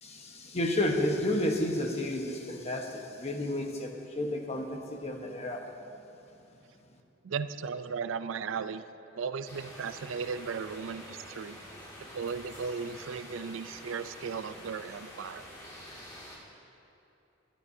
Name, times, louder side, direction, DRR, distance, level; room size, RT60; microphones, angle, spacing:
voice 1, 0.0-5.7, left 1 dB, 35° left, 2 dB, 1.1 m, -31 dB
voice 2, 7.2-8.8 9.1-11.6 12.0-15.5, right 5 dB, 85° right, 12 dB, 0.4 m, -36 dB
sound 1, 9.5-16.4, equal, 20° left, 2.2 m, -47 dB
21.5 x 11.5 x 2.7 m, 2.8 s
head